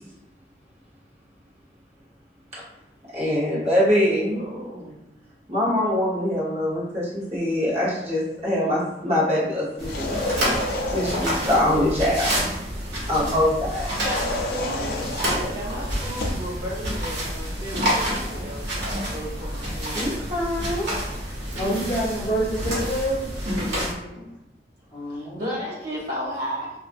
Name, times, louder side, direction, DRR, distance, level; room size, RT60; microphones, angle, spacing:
voice 1, 3.1-4.4 5.5-10.1 10.9-12.5 13.1-13.9 19.9-20.9, left 1 dB, 35° right, -7 dB, 0.9 m, -23 dB
voice 2, 4.3-5.0 13.9-20.3 23.4-24.3 25.1-26.7, equal, 65° right, -9 dB, 1.3 m, -34 dB
sound 1, 9.7-11.6 13.8-16.5, left 2 dB, 55° left, 0.4 m, -30 dB
sound 2, 9.8-23.9, equal, 80° right, 1.0 m, -29 dB
voice 3, 21.6-23.3 24.9-25.5, right 1 dB, 20° left, -8 dB, 1.0 m, -26 dB
2.4 x 2.4 x 2.5 m, 0.84 s
head